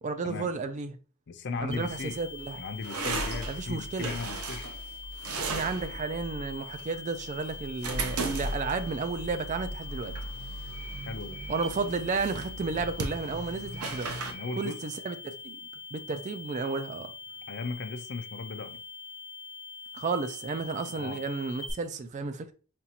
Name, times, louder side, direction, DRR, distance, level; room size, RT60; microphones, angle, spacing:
voice 1, 0.0-1.0 1.6-2.6 3.5-4.1 5.5-10.2 11.5-14.1 14.6-15.6 15.9-17.1 19.9-22.5, right 4 dB, 35° right, 0.3 m, -32 dB
voice 2, 1.3-2.2 2.6-4.7 11.1-11.4 14.3-14.8 17.5-18.8 20.9-21.2, left 4 dB, 50° left, 0.4 m, -37 dB
sound 1, 1.5-14.3, right 2 dB, 70° right, 0.6 m, -37 dB
sound 2, 1.7-21.7, left 4 dB, 75° left, 1.0 m, -44 dB
sound 3, 10.7-11.1 11.3-11.7 13.7-14.1 14.3-14.7, right 3 dB, 50° right, 1.5 m, -48 dB
5.2 x 2.4 x 2.8 m
head